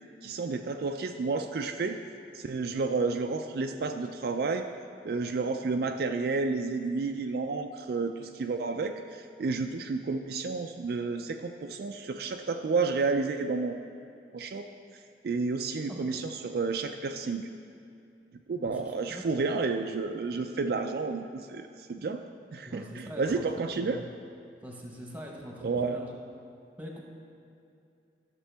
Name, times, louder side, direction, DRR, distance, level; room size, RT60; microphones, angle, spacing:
voice 1, 0.2-2.0 2.3-4.7 5.0-13.8 14.3-14.7 15.2-17.5 18.5-22.2 22.5-24.0 25.6-26.0, right 4 dB, 60° right, 5 dB, 0.3 m, -31 dB
voice 2, 15.9-16.2 18.6-19.2 22.6-23.4 23.8-24.0 24.6-26.1 26.8-27.0, equal, 10° right, 0 dB, 1.1 m, -43 dB
12.5 x 6.8 x 3.4 m, 2.6 s
head